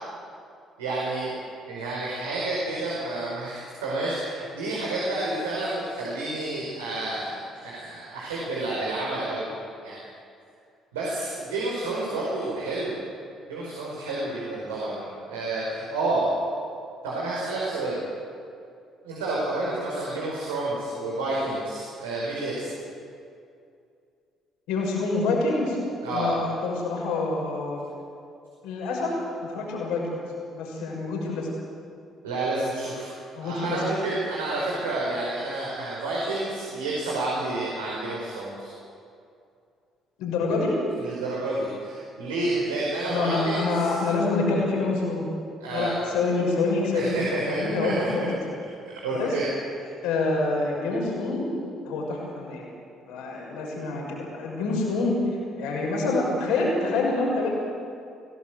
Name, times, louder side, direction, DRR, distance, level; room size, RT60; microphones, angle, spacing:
voice 1, 0.8-1.3 1.7-9.5 9.8-10.0 10.9-13.0 13.5-16.3 17.0-18.0 19.0-22.7 26.0-26.4 32.2-33.1 33.4-38.7 41.0-43.9 45.6-46.1 46.9-48.1 48.9-49.4 49.8-49.9, right 2 dB, 80° right, -5 dB, 5.1 m, -29 dB
voice 2, 24.7-25.8 26.1-27.8 28.6-30.2 30.5-31.5 33.3-33.8 40.2-40.7 43.1-45.3 45.7-47.2 47.5-48.2 49.1-49.3 50.0-51.6 51.8-52.6 53.1-55.1 55.6-57.5, left 3 dB, 70° left, -2 dB, 6.3 m, -26 dB
26.5 x 17.5 x 8.0 m, 2.4 s
figure-of-eight pair, 50°, 0 cm